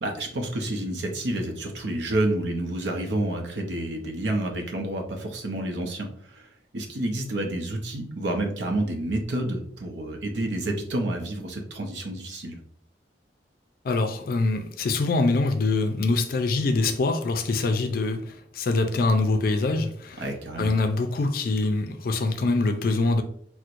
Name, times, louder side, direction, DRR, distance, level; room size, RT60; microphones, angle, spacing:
voice 1, 0.0-6.5 6.7-12.6 20.2-20.8, right 1 dB, 75° right, 0.7 m, -29 dB
voice 2, 13.8-20.3 20.6-23.2, left 3 dB, 55° left, 0.4 m, -24 dB
4.3 x 2.1 x 2.5 m
head